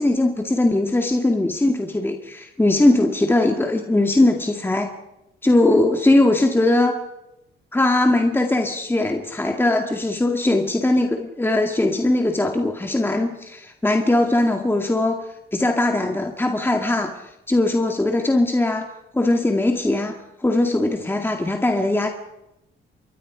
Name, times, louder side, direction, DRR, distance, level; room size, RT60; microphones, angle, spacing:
voice 1, 0.0-4.9 5.4-7.0 7.7-15.2 15.5-17.1 17.5-18.9 19.1-22.1, left 2 dB, 10° left, 3 dB, 2.1 m, -20 dB
28.0 x 22.5 x 5.0 m, 0.87 s
cardioid pair, 90°, 20 cm